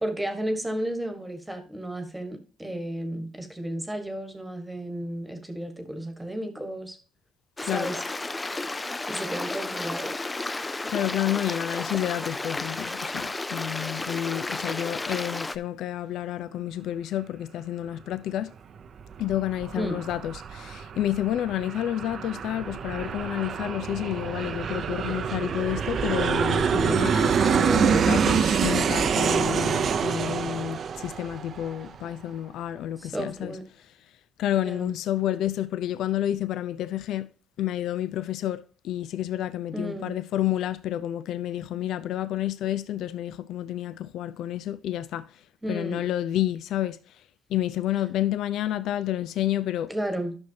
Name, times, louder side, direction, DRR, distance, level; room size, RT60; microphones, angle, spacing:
voice 1, 0.0-7.0 7.6-8.0 9.1-10.2 19.7-20.0 33.0-33.6 34.5-34.9 39.7-40.2 45.6-46.0 49.9-50.4, right 1 dB, 10° right, 1.4 m, -33 dB
Stream, 7.6-15.6, left 2 dB, 15° left, 0.4 m, -32 dB
voice 2, 10.6-18.5 19.2-33.6 34.4-37.3 37.6-45.3 45.7-47.0 47.5-49.9, left 12 dB, 80° left, 0.5 m, -30 dB
Aircraft, 18.8-32.0, right 7 dB, 50° right, 0.6 m, -26 dB
11.5 x 6.3 x 2.8 m
cardioid pair, 125°, 0 cm